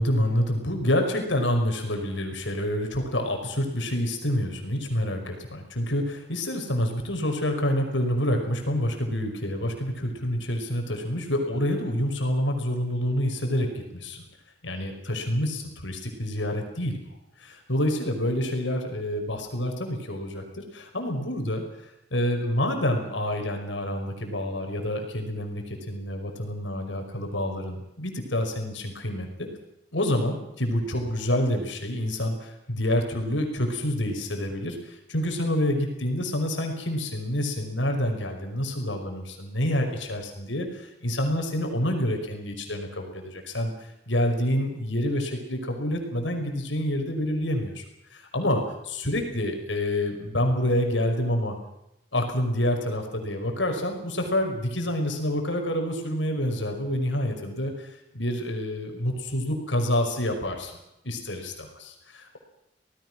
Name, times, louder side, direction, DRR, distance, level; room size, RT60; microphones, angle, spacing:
voice 1, 0.0-14.2 14.6-17.0 17.4-21.6 22.1-29.5 29.9-47.8 48.1-51.6 52.1-57.9 58.1-60.7 61.0-62.4, left 1 dB, 90° left, 4 dB, 5.5 m, -27 dB
27.0 x 19.0 x 6.2 m, 0.86 s
head